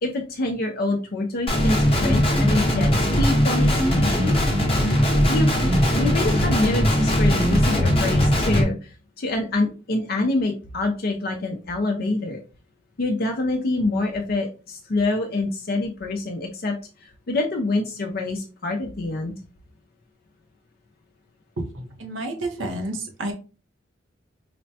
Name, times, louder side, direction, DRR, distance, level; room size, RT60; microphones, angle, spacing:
voice 1, 0.0-4.8 5.3-5.5 5.9-12.4 13.0-19.3, left 2 dB, 50° left, 2 dB, 0.5 m, -26 dB
Guitar, 1.5-8.6, equal, 30° left, 0.9 m, -20 dB
voice 2, 21.6-23.3, right 1 dB, 70° right, 3 dB, 0.8 m, -30 dB
4.9 x 2.1 x 2.7 m, 0.34 s
head